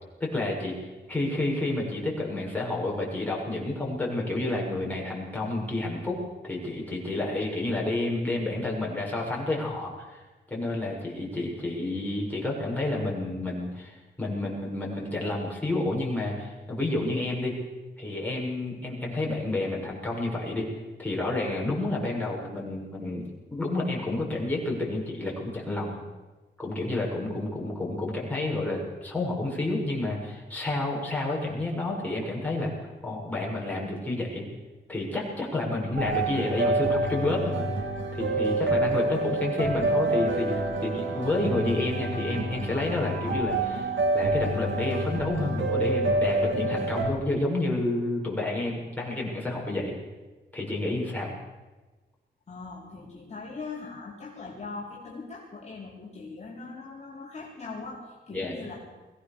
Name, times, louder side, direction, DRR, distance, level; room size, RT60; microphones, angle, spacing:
voice 1, 0.2-0.8 1.1-10.2 10.5-17.5 18.0-20.7 21.0-23.2 23.5-26.0 26.6-32.7 33.0-34.4 34.9-37.6 38.1-43.9 44.1-49.9 50.5-51.3 58.3-58.6, left 2 dB, 10° left, -3 dB, 6.9 m, -30 dB
sound 1, 36.0-47.1, right 2 dB, 75° right, 2.2 m, -27 dB
voice 2, 52.5-58.8, left 4 dB, 35° left, -4 dB, 3.8 m, -40 dB
21.5 x 17.5 x 7.0 m, 1.2 s
wide cardioid pair, 105°, 19 cm